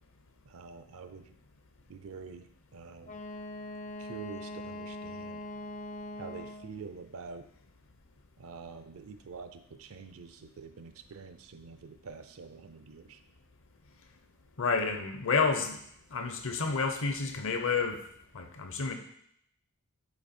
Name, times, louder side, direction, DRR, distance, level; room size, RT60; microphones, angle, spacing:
voice 1, 0.5-1.3 1.9-3.2 4.0-5.4 6.2-7.4 8.4-13.2, right 5 dB, 65° right, 9 dB, 0.5 m, -46 dB
Wind instrument woodwind instrument, 3.0-6.8, left 1 dB, 35° left, 0.5 m, -42 dB
voice 2, 14.6-15.8 16.1-18.0 18.3-18.9, left 4 dB, 65° left, 6 dB, 0.8 m, -29 dB
8.1 x 3.1 x 4.3 m, 0.69 s
head